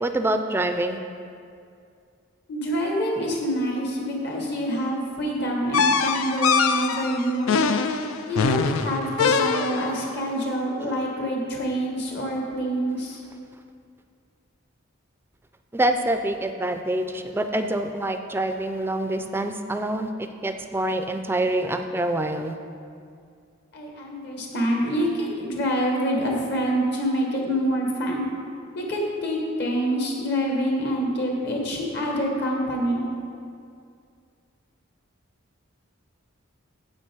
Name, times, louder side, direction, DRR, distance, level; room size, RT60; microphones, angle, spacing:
voice 1, 0.0-1.0 15.7-22.5, right 1 dB, 10° right, 7 dB, 0.4 m, -26 dB
voice 2, 2.5-7.6 8.3-13.2 23.7-28.2 28.7-33.1, equal, 55° left, -1 dB, 1.6 m, -26 dB
sound 1, 5.7-10.0, left 5 dB, 90° left, 0.5 m, -23 dB
8.9 x 7.8 x 4.6 m, 2.4 s
head